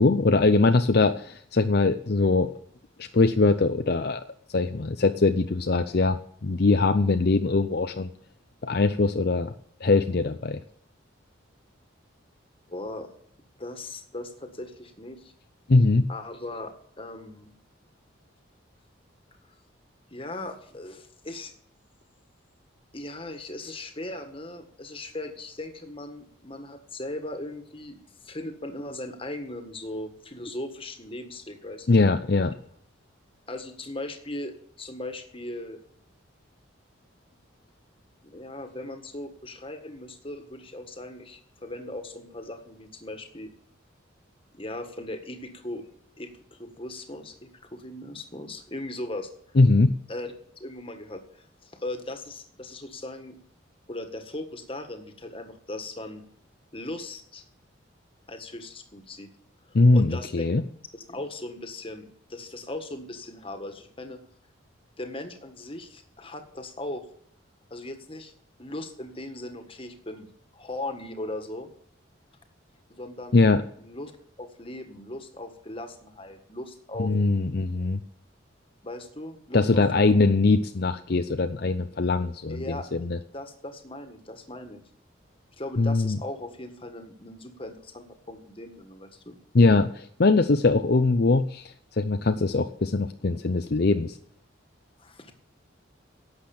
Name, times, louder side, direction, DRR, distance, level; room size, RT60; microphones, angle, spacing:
voice 1, 0.0-2.5 3.0-4.2 4.5-8.1 8.6-9.5 9.8-10.6 15.7-16.1 31.9-32.5 49.6-49.9 59.7-60.6 73.3-73.6 77.0-78.0 79.5-83.2 85.8-86.2 89.5-94.2, left 3 dB, 50° left, 9 dB, 0.6 m, -22 dB
voice 2, 12.7-13.1 13.6-15.3 16.1-17.5 20.1-21.5 22.9-28.0 28.2-32.1 33.5-35.8 38.2-43.5 44.5-45.9 46.2-49.3 50.1-50.3 50.6-53.4 53.9-56.2 56.7-57.4 58.3-59.3 59.9-60.5 60.9-64.2 65.0-67.0 67.7-68.3 68.6-71.7 72.9-73.4 73.8-74.1 74.4-77.1 78.8-80.0 82.5-82.8 83.3-84.8 85.6-89.4 95.0-95.3, left 1 dB, 25° left, 7 dB, 1.7 m, -38 dB
11.5 x 8.2 x 8.8 m, 0.66 s
head